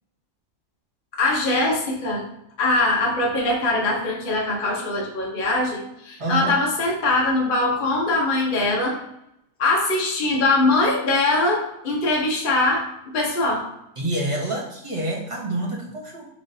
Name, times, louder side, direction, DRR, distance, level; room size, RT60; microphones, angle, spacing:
voice 1, 1.2-2.2 2.6-9.0 9.6-12.9 13.1-13.6, left 2 dB, 40° left, -1 dB, 1.0 m, -22 dB
voice 2, 6.2-6.5 14.0-16.3, right 1 dB, 25° right, -3 dB, 0.8 m, -27 dB
5.3 x 3.1 x 2.7 m, 0.79 s
omnidirectional pair, 1.5 m